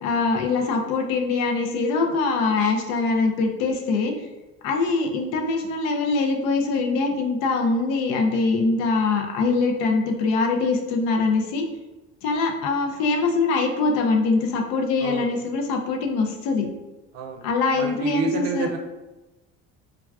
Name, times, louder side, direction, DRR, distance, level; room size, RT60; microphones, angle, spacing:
voice 1, 0.0-4.1 4.6-11.6 12.2-16.7 17.4-18.7, left 3 dB, 80° left, 2 dB, 0.6 m, -23 dB
voice 2, 17.8-18.8, right 3 dB, 75° right, 4 dB, 0.5 m, -28 dB
3.4 x 2.3 x 2.3 m, 1.1 s
supercardioid pair, 75°, 34 cm